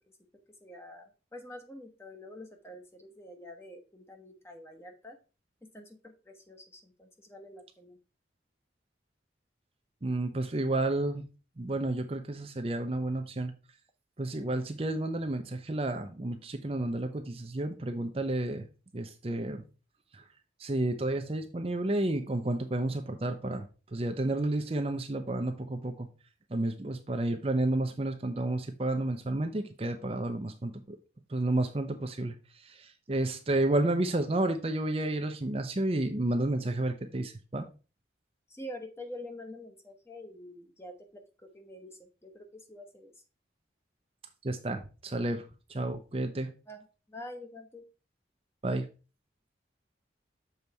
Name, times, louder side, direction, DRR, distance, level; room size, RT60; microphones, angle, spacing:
voice 1, 0.6-5.2 5.6-8.0 38.5-43.1 46.7-47.9, left 1 dB, 15° left, 4 dB, 1.0 m, -47 dB
voice 2, 10.0-11.2 11.6-13.5 14.2-18.7 18.9-19.6 20.6-23.7 23.9-26.1 26.5-31.0 31.3-32.3 32.8-37.7 44.4-45.4 45.7-46.5 48.6-48.9, right 2 dB, 30° right, 6 dB, 0.6 m, -31 dB
7.0 x 4.0 x 4.6 m, 0.33 s
head